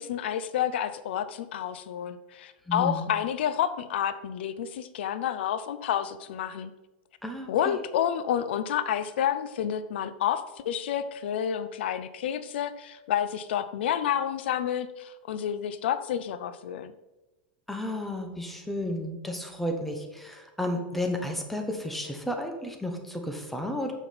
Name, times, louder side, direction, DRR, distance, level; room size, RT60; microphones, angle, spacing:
voice 1, 0.0-6.7 7.5-16.9, left 9 dB, 80° left, 13 dB, 0.5 m, -29 dB
voice 2, 2.7-3.1 7.2-7.8 17.7-23.9, left 1 dB, 5° left, 3 dB, 0.9 m, -32 dB
7.0 x 5.8 x 4.2 m, 1.1 s
supercardioid pair, 150°, 6 cm